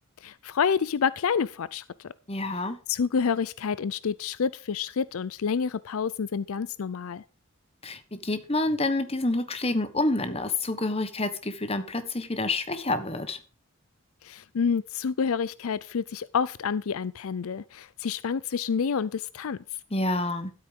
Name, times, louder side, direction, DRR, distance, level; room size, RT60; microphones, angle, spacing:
voice 1, 0.2-2.1 2.5-2.6 2.9-7.2 14.2-19.6, left 6 dB, 75° left, 0.5 m, -28 dB
voice 2, 2.3-2.8 7.8-13.4 19.9-20.5, left 2 dB, 25° left, 1.3 m, -28 dB
12.5 x 8.7 x 5.2 m
head